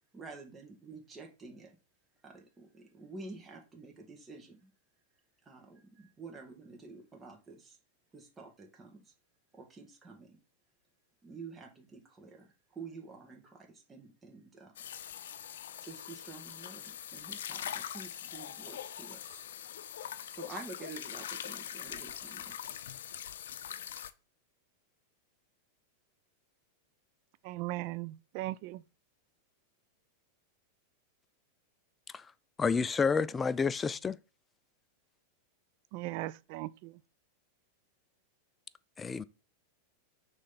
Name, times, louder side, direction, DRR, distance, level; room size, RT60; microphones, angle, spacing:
voice 1, 0.1-1.7 2.2-4.7 5.4-7.7 8.1-9.0 9.5-10.4 11.2-14.7 15.8-19.4 20.3-22.5, right 4 dB, 20° right, 1.8 m, -49 dB
sound 1, 14.8-24.1, left 10 dB, 80° left, 0.5 m, -42 dB
voice 2, 27.5-28.8 35.9-36.7, right 18 dB, 55° right, 0.4 m, -37 dB
voice 3, 32.6-34.1 39.0-39.2, left 5 dB, 20° left, 0.4 m, -29 dB
6.3 x 3.3 x 5.7 m
hypercardioid pair, 115°, 0 cm